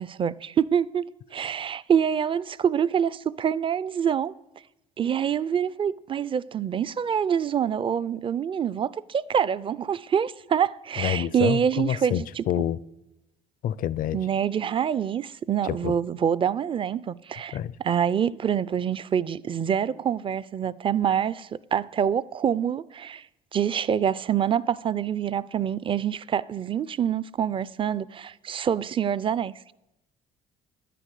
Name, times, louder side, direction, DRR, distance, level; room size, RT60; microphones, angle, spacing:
voice 1, 0.0-4.3 5.0-12.4 14.1-17.6 17.8-23.2 23.5-29.7, right 8 dB, 30° right, 0.4 m, -26 dB
voice 2, 11.0-12.8 13.6-14.2 15.7-15.9 17.5-17.8, left 11 dB, 55° left, 0.5 m, -27 dB
10.0 x 10.0 x 8.3 m
cardioid pair, 110°, 17 cm